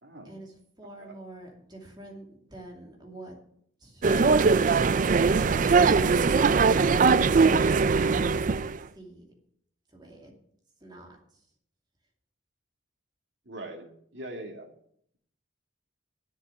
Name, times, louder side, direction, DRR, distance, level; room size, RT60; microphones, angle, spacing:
voice 1, 0.2-3.3 3.8-4.4 8.9-9.2 9.9-10.3 10.8-11.5, right 1 dB, 20° right, 0 dB, 2.7 m, -47 dB
sound 1, 4.0-8.8, right 4 dB, 40° right, 0.4 m, -21 dB
voice 2, 13.5-14.7, right 1 dB, 60° right, 3 dB, 2.2 m, -41 dB
10.0 x 7.4 x 9.1 m, 0.67 s
head